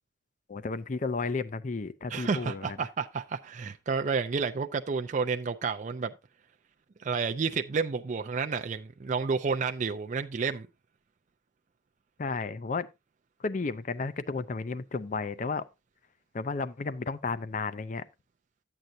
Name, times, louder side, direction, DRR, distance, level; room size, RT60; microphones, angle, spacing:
voice 1, 0.5-2.8 12.2-12.9 13.4-15.7 16.3-18.1, left 4 dB, 40° left, 0.5 m, -33 dB
voice 2, 2.1-6.1 7.0-10.7, right 5 dB, 40° right, 0.4 m, -30 dB
11.5 x 7.8 x 2.7 m
head